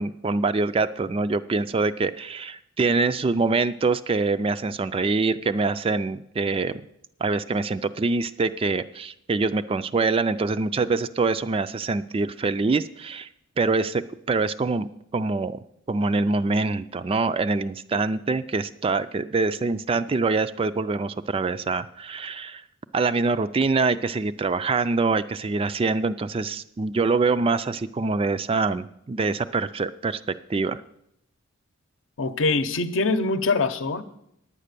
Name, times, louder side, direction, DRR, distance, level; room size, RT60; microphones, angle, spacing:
voice 1, 0.0-6.8 7.2-13.3 13.6-22.6 22.9-30.2 30.5-30.8, right 3 dB, 25° right, 13 dB, 0.3 m, -25 dB
voice 2, 32.2-34.0, left 3 dB, 65° left, 10 dB, 0.8 m, -23 dB
9.7 x 8.7 x 6.7 m, 0.77 s
head